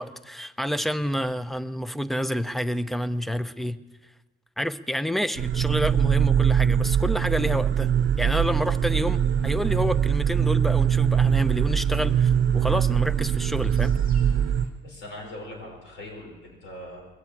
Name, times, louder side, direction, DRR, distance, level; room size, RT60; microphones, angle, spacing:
voice 1, 0.0-3.8 4.6-14.0, equal, ahead, 14 dB, 0.6 m, -28 dB
sound 1, 5.4-14.7, right 9 dB, 70° right, 0.7 m, -22 dB
sound 2, 7.9-14.7, left 1 dB, 45° left, 3.8 m, -45 dB
voice 2, 14.8-17.0, left 1 dB, 75° left, 0 dB, 5.9 m, -40 dB
21.0 x 7.3 x 8.6 m, 1.2 s
cardioid pair, 90°, 20 cm